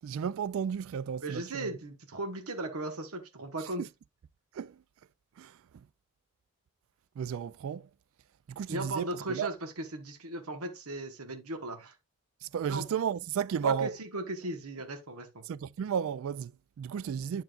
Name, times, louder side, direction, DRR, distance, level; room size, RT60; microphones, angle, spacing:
voice 1, 0.0-1.7 3.6-3.9 4.5-4.8 5.4-5.9 7.2-7.9 8.5-9.5 12.4-14.0 15.4-17.4, right 7 dB, 70° right, 0.3 m, -33 dB
voice 2, 1.2-3.8 8.7-11.9 12.7-12.8 13.6-15.4, right 2 dB, 85° right, 1.3 m, -37 dB
9.1 x 5.7 x 2.4 m
head